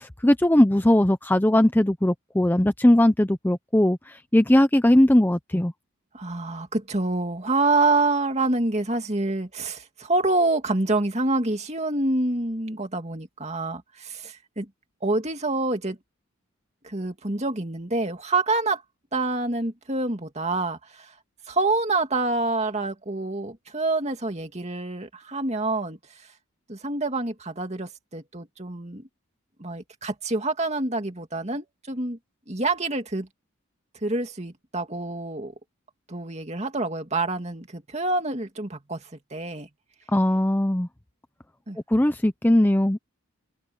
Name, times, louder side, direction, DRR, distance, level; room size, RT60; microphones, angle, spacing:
voice 1, 0.0-5.7 40.1-40.9 41.9-43.0, left 1 dB, 10° left, 0.5 m, -19 dB
voice 2, 6.1-14.7 15.0-16.0 16.8-18.8 19.1-21.1 21.5-26.3 26.7-29.1 29.6-32.2 32.5-33.3 34.0-35.5 36.1-39.7 41.7-41.8, right 2 dB, 30° right, 2.4 m, -27 dB
head